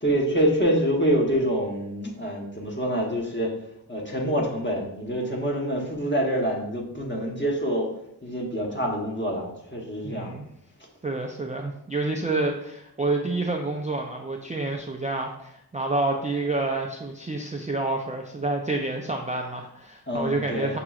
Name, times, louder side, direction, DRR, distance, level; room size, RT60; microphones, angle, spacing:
voice 1, 0.0-3.6 3.9-7.9 8.2-10.3 20.1-20.7, equal, 25° left, -1 dB, 1.0 m, -26 dB
voice 2, 10.0-10.5 11.0-20.8, right 2 dB, 20° right, 1 dB, 0.3 m, -28 dB
5.7 x 2.9 x 2.4 m, 0.79 s
wide cardioid pair, 55°, 40 cm